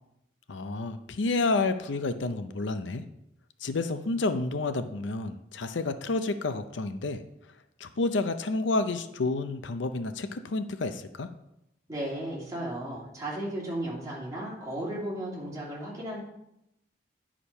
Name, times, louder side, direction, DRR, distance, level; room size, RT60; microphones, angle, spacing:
voice 1, 0.5-3.0 3.6-7.2 7.8-11.3, left 3 dB, 75° left, 10 dB, 0.6 m, -30 dB
voice 2, 11.9-16.2, right 1 dB, 20° right, -5 dB, 2.7 m, -35 dB
10.0 x 5.0 x 5.5 m, 0.82 s
head